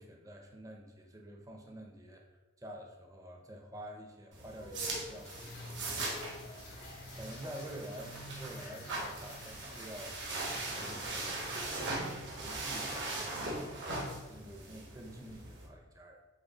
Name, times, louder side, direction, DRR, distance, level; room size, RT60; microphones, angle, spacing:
voice 1, 0.0-2.2 2.6-6.2 6.5-6.9 7.1-11.5 11.8-13.8 14.3-16.2, equal, 15° right, 1 dB, 0.5 m, -49 dB
sound 1, 4.3-15.7, right 2 dB, 65° right, 0.9 m, -40 dB
sound 2, 4.5-11.9, left 2 dB, 45° left, 0.5 m, -53 dB
Rain, 5.1-11.0, left 3 dB, 85° left, 1.2 m, -55 dB
5.1 x 2.4 x 3.9 m, 1.2 s
head